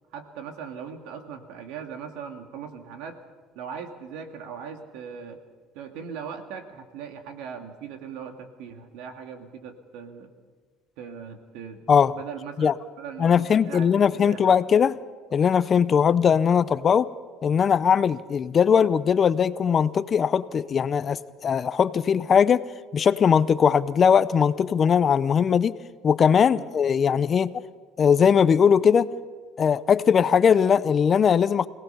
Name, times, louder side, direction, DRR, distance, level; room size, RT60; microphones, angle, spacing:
voice 1, 0.1-3.2 3.5-5.4 5.7-10.3 11.0-11.8 12.1-14.6 26.5-26.7, right 7 dB, 85° right, 6 dB, 2.1 m, -39 dB
voice 2, 13.2-15.0 15.3-17.1 17.4-22.6 22.9-25.7 26.0-27.6 28.0-29.1 29.6-31.7, left 7 dB, 35° left, 16 dB, 0.6 m, -20 dB
25.5 x 18.0 x 5.6 m, 1.5 s
cardioid pair, 120°, 0 cm